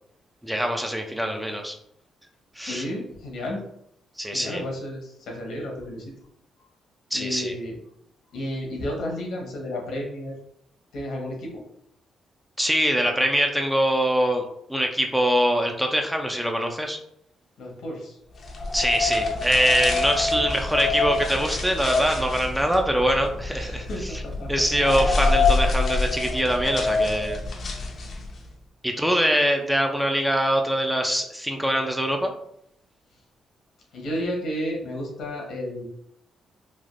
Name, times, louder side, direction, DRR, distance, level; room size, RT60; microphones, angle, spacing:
voice 1, 0.4-1.7 2.6-2.8 4.2-4.6 7.1-7.6 12.6-14.4 14.7-17.0 18.7-24.2 24.5-27.4 28.8-32.3, equal, 5° right, 3 dB, 0.4 m, -23 dB
voice 2, 2.6-3.6 4.3-6.1 6.6-6.7 7.1-7.8 8.3-10.3 10.9-11.6 17.6-18.2 23.5-24.5 33.9-35.8, left 1 dB, 75° left, -1 dB, 1.0 m, -32 dB
sound 1, 18.4-28.4, left 3 dB, 55° left, 0.6 m, -26 dB
3.3 x 2.4 x 2.5 m, 0.74 s
cardioid pair, 70°, 0 cm